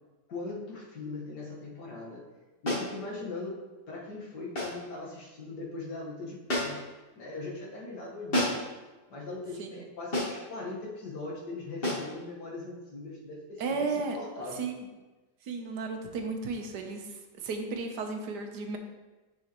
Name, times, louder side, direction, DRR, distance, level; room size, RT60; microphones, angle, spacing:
voice 1, 0.3-2.3 2.6-6.8 7.2-8.6 9.1-13.8 14.1-14.7, left 3 dB, 75° left, -3 dB, 2.1 m, -40 dB
sound 1, 2.7-3.0 4.6-4.9 6.5-6.9 8.3-8.7 10.1-10.5 11.8-12.1, left 1 dB, 35° left, 1.8 m, -30 dB
voice 2, 13.6-14.2 14.5-14.9 15.4-18.8, right 4 dB, 75° right, 4 dB, 1.4 m, -34 dB
7.9 x 6.5 x 3.0 m, 1.2 s
omnidirectional pair, 1.8 m